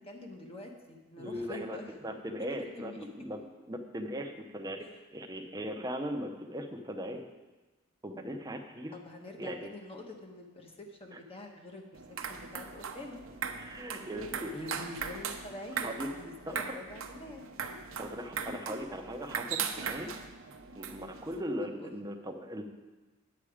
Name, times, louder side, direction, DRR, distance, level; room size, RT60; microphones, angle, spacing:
voice 1, 0.0-1.9 2.6-3.1 3.4-3.5 8.9-12.0 12.3-13.2 14.5-17.4 17.7-17.9 21.8-22.0, left 1 dB, 30° left, 2 dB, 1.2 m, -46 dB
voice 2, 1.2-3.4 3.7-4.8 5.1-7.2 8.0-9.0 9.4-9.7 11.1-11.2 13.5-14.8 15.8-16.1 16.5-16.8 18.0-20.1 20.8-22.6, equal, 20° right, 4 dB, 0.8 m, -39 dB
sound 1, 11.9-21.4, right 6 dB, 70° right, 0.8 m, -39 dB
9.8 x 8.1 x 5.0 m, 1.2 s
head